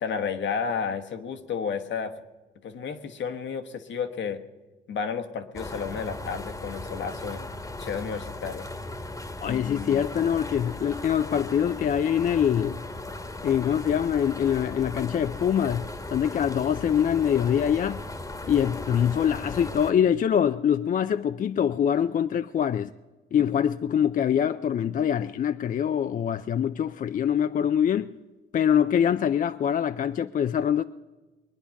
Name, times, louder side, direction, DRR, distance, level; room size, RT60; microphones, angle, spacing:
voice 1, 0.0-2.1 2.6-4.4 4.9-7.5 7.8-8.6 9.4-10.1, left 6 dB, 65° left, 1.3 m, -32 dB
sound 1, 5.5-19.9, left 2 dB, 15° left, 1.3 m, -37 dB
voice 2, 9.4-12.9 13.4-18.0 18.4-22.9 23.3-28.1 28.5-30.8, left 9 dB, 45° left, 0.4 m, -24 dB
22.0 x 9.8 x 5.8 m
cardioid pair, 90°, 20 cm